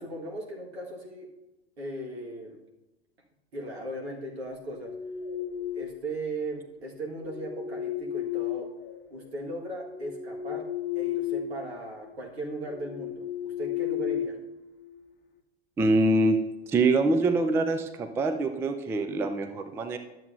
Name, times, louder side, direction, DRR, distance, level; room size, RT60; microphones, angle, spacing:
voice 1, 0.0-1.3 1.8-2.6 3.5-4.9 5.7-8.7 9.1-10.7 11.0-14.4, right 1 dB, 75° right, -1 dB, 1.8 m, -37 dB
sound 1, 4.6-6.1 7.1-9.3 9.7-11.6 11.9-12.1 12.6-15.0, left 10 dB, 30° left, 0.8 m, -34 dB
voice 2, 15.8-16.4 16.7-20.0, right 2 dB, 10° right, 7 dB, 0.3 m, -24 dB
12.0 x 7.6 x 2.6 m, 1.0 s
figure-of-eight pair, 85°, 32 cm